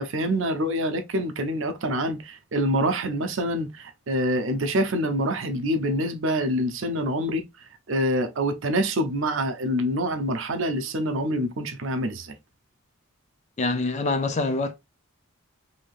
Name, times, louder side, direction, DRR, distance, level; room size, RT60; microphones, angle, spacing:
voice 1, 0.0-7.4 7.9-12.4, equal, 60° right, 0.6 m, -26 dB
voice 2, 13.6-14.7, left 3 dB, 30° left, 0.4 m, -25 dB
3.3 x 2.7 x 2.4 m
head